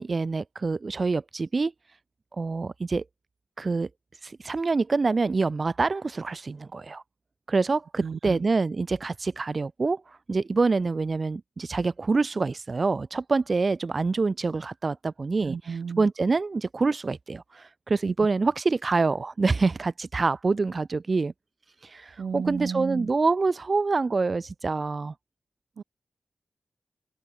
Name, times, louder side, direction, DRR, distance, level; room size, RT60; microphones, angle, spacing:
voice 1, 0.0-2.0 2.3-3.0 3.6-7.0 7.5-21.3 21.8-25.1, right 4 dB, 55° right, 1.3 m, -26 dB
voice 2, 8.0-8.4 15.4-16.1 18.0-18.1 22.2-23.1 25.8-25.9, right 6 dB, 80° right, 1.8 m, -33 dB
cardioid pair, 50°, 0 cm